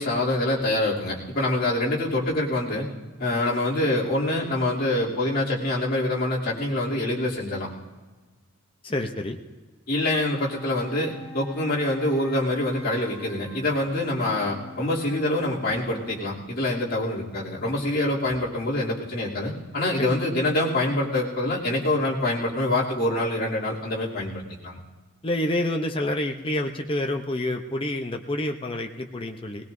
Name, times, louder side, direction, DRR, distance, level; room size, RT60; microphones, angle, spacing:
voice 1, 0.0-2.9 3.2-7.7 9.9-24.8, left 1 dB, 45° left, -6 dB, 2.9 m, -25 dB
voice 2, 8.8-9.4 20.0-20.2 25.2-29.7, left 1 dB, 25° left, 3 dB, 0.7 m, -28 dB
sound 1, 10.0-16.2, left 1 dB, 10° right, 6.3 m, -45 dB
20.0 x 19.5 x 2.6 m, 1.3 s
head